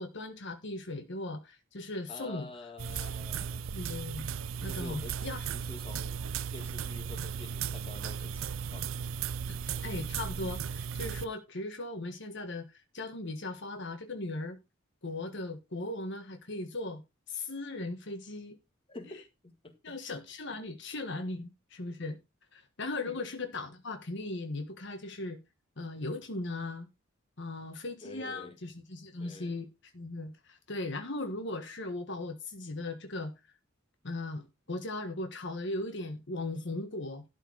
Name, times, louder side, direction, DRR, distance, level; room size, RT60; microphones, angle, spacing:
voice 1, 0.0-2.5 3.7-4.3 4.6-5.5 9.5-14.6 15.0-17.0 17.3-18.6 19.8-22.2 22.5-25.4 25.8-26.9 27.4-29.7 29.9-33.3 34.0-37.2, left 2 dB, 65° left, 1.4 m, -38 dB
voice 2, 2.1-3.7 4.6-6.2 6.5-8.9 18.9-20.0 22.9-23.2 28.0-28.6 29.2-29.6, left 2 dB, 30° left, 2.1 m, -48 dB
sound 1, 2.8-11.2, right 7 dB, 90° right, 0.5 m, -36 dB
12.5 x 4.5 x 6.1 m
head